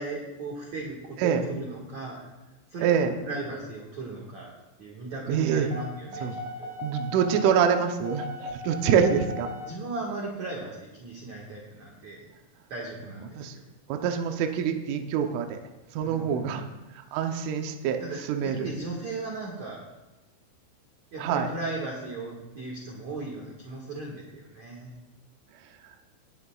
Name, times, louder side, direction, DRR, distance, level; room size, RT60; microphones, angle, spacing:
voice 1, 0.0-2.2 2.7-4.5 4.8-6.3 6.6-6.7 9.6-12.3 12.7-13.7 16.0-16.8 18.0-19.8 21.1-24.9, right 3 dB, 60° right, -3 dB, 1.9 m, -37 dB
voice 2, 2.8-3.1 5.3-5.7 6.2-6.4 6.8-9.5 13.1-13.6 13.9-15.6 15.9-16.6 16.9-18.7 21.2-21.5, right 7 dB, 80° right, 5 dB, 3.2 m, -26 dB
sound 1, 5.7-9.7, left 1 dB, 45° right, 1.2 m, -37 dB
19.5 x 11.0 x 2.4 m, 1.0 s
omnidirectional pair, 5.9 m